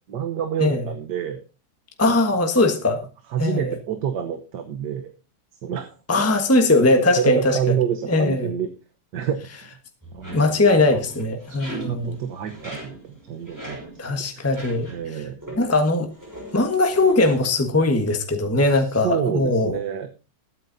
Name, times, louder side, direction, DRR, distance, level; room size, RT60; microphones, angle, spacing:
voice 1, 0.1-1.4 2.1-2.2 3.3-5.1 5.6-5.9 7.0-8.7 9.1-9.4 10.1-10.4 10.9-11.0 11.5-11.6 11.9-13.8 14.1-14.4 14.9-15.4 18.7-20.1, right 9 dB, 85° right, 6 dB, 1.7 m, -28 dB
voice 2, 2.0-3.0 3.4-3.7 6.1-7.6 8.1-8.5 10.3-12.1 14.0-14.9 15.6-16.1 16.5-19.7, left 2 dB, 10° left, 5 dB, 1.2 m, -20 dB
sound 1, 10.0-15.2 15.4-15.8 16.1-17.4, right 1 dB, 10° right, 5.9 m, -39 dB
21.5 x 9.0 x 2.7 m, 0.33 s
omnidirectional pair, 1.8 m